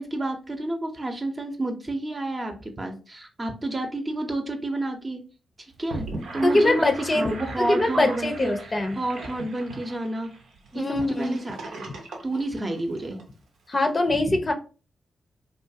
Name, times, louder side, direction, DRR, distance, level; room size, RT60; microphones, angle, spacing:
voice 1, 0.0-5.2 5.6-6.1 6.3-8.5 9.0-10.3 10.7-11.7 12.2-13.2, right 1 dB, 35° right, 4 dB, 0.7 m, -30 dB
Gurgling / Sink (filling or washing), 5.7-13.2, right 2 dB, 80° right, 0.6 m, -39 dB
voice 2, 6.4-9.0 10.7-11.4 11.9-12.0 13.7-14.5, left 2 dB, 40° left, 6 dB, 0.6 m, -23 dB
2.5 x 2.3 x 2.7 m, 0.35 s
supercardioid pair, 45°, 0 cm